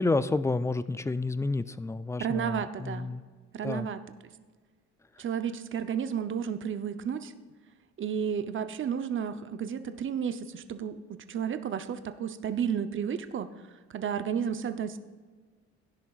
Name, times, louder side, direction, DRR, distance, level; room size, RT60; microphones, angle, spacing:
voice 1, 0.0-3.2 3.6-3.9, left 3 dB, 10° left, 14 dB, 0.3 m, -29 dB
voice 2, 2.2-3.1 3.5-4.0 5.2-7.3 8.0-13.5 13.9-15.0, right 8 dB, 40° right, 10 dB, 0.7 m, -32 dB
16.5 x 10.5 x 2.4 m, 1.5 s
cardioid pair, 90°, 30 cm